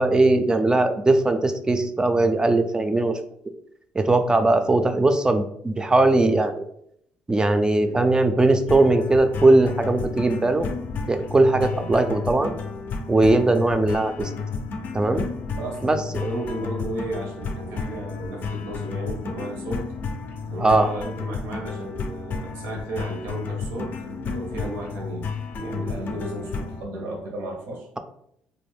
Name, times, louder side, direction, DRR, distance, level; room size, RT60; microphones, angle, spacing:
voice 1, 0.0-3.2 3.9-6.6 7.3-10.7 11.1-12.5 13.1-14.3 14.9-15.3 15.8-16.3 20.6-20.9, right 2 dB, 20° right, 8 dB, 0.4 m, -19 dB
sound 1, 8.7-26.8, left 4 dB, 55° left, 0.4 m, -32 dB
voice 2, 15.6-19.8 20.5-27.9, right 1 dB, 75° right, 0 dB, 0.7 m, -34 dB
2.4 x 2.0 x 3.3 m, 0.71 s
hypercardioid pair, 60°, 4 cm